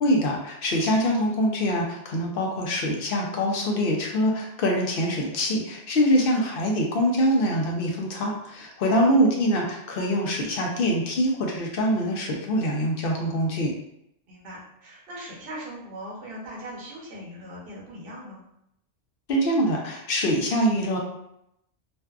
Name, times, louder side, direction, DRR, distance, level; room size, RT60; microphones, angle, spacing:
voice 1, 0.0-13.7 19.3-21.0, equal, 60° left, 0 dB, 0.6 m, -24 dB
voice 2, 8.8-9.2 14.3-18.4, right 1 dB, 55° right, -5 dB, 0.9 m, -40 dB
2.5 x 2.3 x 2.3 m, 0.78 s
omnidirectional pair, 1.2 m